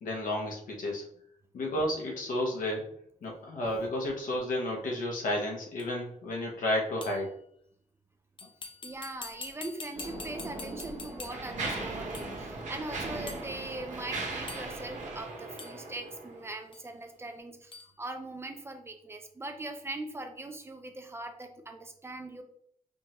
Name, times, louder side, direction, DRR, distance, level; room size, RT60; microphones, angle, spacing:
voice 1, 0.0-1.0 1.5-2.8 3.2-7.3 8.4-8.5, left 1 dB, 85° left, -1 dB, 1.0 m, -32 dB
sound 1, 5.8-5.9 7.0-7.3 8.4-11.6 12.1-12.4 13.3-13.5 14.5-14.9 15.6-15.8 16.7-16.9 17.7-17.9, left 4 dB, 40° left, 0.5 m, -45 dB
voice 2, 8.8-17.7 18.0-22.4, right 2 dB, 20° right, 6 dB, 0.4 m, -41 dB
sound 2, 9.9-15.2, right 2 dB, 35° right, 0.9 m, -43 dB
Mechanisms, 9.9-10.1 10.8-16.6, right 3 dB, 65° right, 1.1 m, -39 dB
5.1 x 2.5 x 2.9 m, 0.70 s
wide cardioid pair, 160°, 13 cm